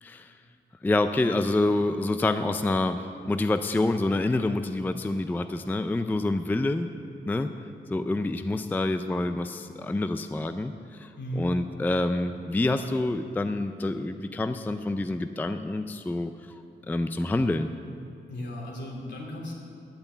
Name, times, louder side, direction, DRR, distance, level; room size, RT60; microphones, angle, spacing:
voice 1, 0.0-0.3 0.8-6.9 7.3-7.5 7.9-17.7, left 2 dB, 10° left, 9 dB, 0.4 m, -27 dB
voice 2, 11.2-11.5 18.3-19.6, equal, 70° left, -1 dB, 2.9 m, -35 dB
10.5 x 8.9 x 8.1 m, 2.6 s
wide cardioid pair, 135°, 19 cm